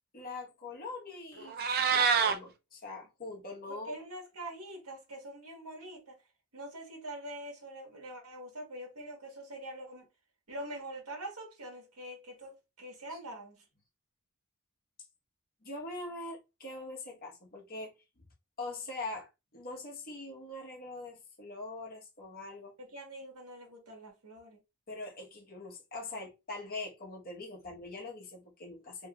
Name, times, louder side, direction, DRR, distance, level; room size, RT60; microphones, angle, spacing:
voice 1, 0.1-3.9 13.1-13.2 15.6-17.9 18.6-22.7 24.9-29.1, left 2 dB, 40° left, 1.1 m, -43 dB
Meow, 1.4-2.4, right 6 dB, 45° right, 0.4 m, -26 dB
voice 2, 3.7-6.2 6.5-10.1 10.5-13.6 22.8-24.6, right 1 dB, 80° right, 1.3 m, -44 dB
3.1 x 2.4 x 3.0 m
head